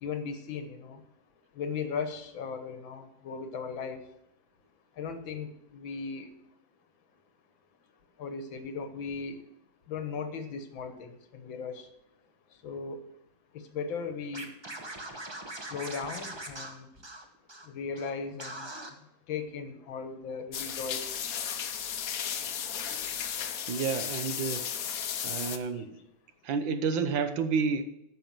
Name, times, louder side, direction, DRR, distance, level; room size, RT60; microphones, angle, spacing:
voice 1, 0.0-1.0 1.6-4.0 5.0-6.3 8.2-9.4 9.9-11.9 12.6-13.0 13.7-14.5 15.7-16.9 17.7-18.7 19.3-21.1, left 5 dB, 75° left, 9 dB, 1.9 m, -37 dB
Scratching (performance technique), 14.3-17.7 17.9-18.1 18.4-18.9, right 1 dB, 20° right, 0.8 m, -41 dB
sound 1, 20.5-25.6, left 8 dB, 55° left, 1.1 m, -34 dB
voice 2, 23.7-24.6 25.2-26.0 26.4-27.8, right 5 dB, 75° right, 10 dB, 1.6 m, -30 dB
10.0 x 6.4 x 7.4 m, 0.83 s
omnidirectional pair, 2.1 m